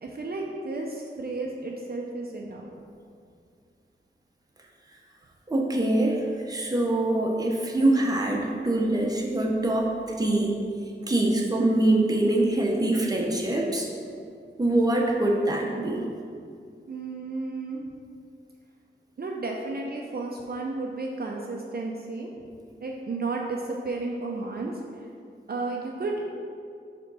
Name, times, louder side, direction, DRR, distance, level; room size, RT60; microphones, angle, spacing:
voice 1, 0.0-2.7 16.9-17.8 19.2-22.3 22.8-24.8 25.5-26.3, right 3 dB, 50° right, -1 dB, 0.6 m, -32 dB
voice 2, 5.5-10.6 11.1-13.9 14.6-16.0, right 1 dB, 20° right, -1 dB, 0.8 m, -24 dB
5.0 x 3.6 x 5.4 m, 2.3 s
wide cardioid pair, 100°, 20 cm